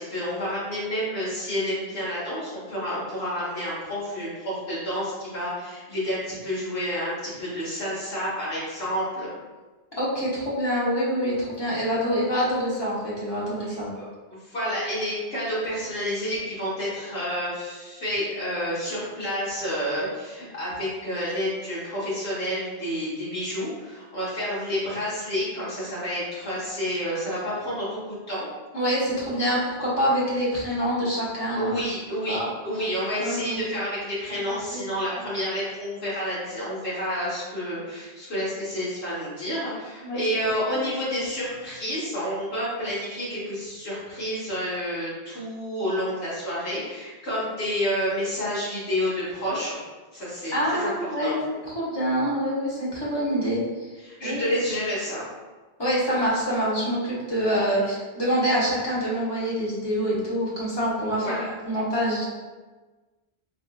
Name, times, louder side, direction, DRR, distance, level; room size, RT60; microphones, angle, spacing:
voice 1, 0.0-9.3 13.7-28.4 31.5-49.8 50.1-50.9 51.2-51.3 54.0-55.2 61.1-61.5, equal, 80° left, -10 dB, 1.5 m, -29 dB
voice 2, 10.0-13.9 28.7-31.7 32.3-32.5 33.2-33.6 40.0-40.2 40.7-40.8 50.5-51.4 51.7-53.9 54.2-54.4 55.8-61.4 61.6-62.3, equal, 25° left, -7 dB, 1.0 m, -26 dB
4.8 x 2.6 x 2.3 m, 1.3 s
omnidirectional pair, 1.1 m